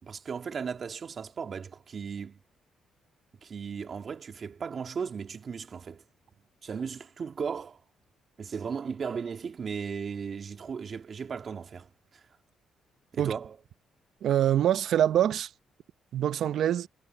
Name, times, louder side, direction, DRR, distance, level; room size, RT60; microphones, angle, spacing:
voice 1, 0.0-2.4 3.4-6.0 6.6-7.8 8.4-11.9 13.1-13.6, right 6 dB, 45° right, 2.1 m, -36 dB
voice 2, 14.2-15.5 16.1-16.9, right 11 dB, 70° right, 0.8 m, -25 dB
cardioid pair, 90°, 0 cm